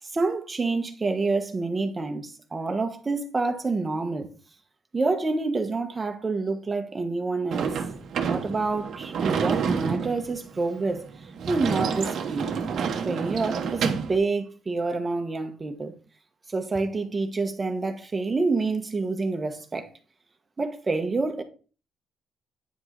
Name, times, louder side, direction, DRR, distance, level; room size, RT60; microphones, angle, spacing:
voice 1, 0.0-4.3 4.9-7.7 8.3-11.0 11.5-12.5 13.0-16.0 16.5-19.9 20.6-21.4, right 3 dB, 30° right, 1.3 m, -27 dB
Sliding door / Slam, 7.5-14.2, right 6 dB, 70° right, 1.1 m, -29 dB
9.3 x 4.8 x 4.0 m
cardioid pair, 90°, 0 cm